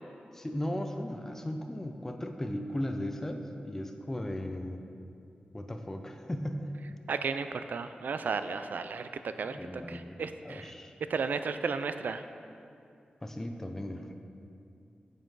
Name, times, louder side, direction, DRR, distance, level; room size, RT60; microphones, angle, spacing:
voice 1, 0.3-4.8 5.5-6.7 9.5-10.2 10.4-10.9 13.2-14.1, left 1 dB, 15° left, 5 dB, 0.5 m, -36 dB
voice 2, 7.1-9.6 9.9-10.7 11.1-12.2, right 5 dB, 80° right, 10 dB, 0.3 m, -34 dB
9.7 x 7.3 x 3.9 m, 2.5 s
wide cardioid pair, 145°, 3 cm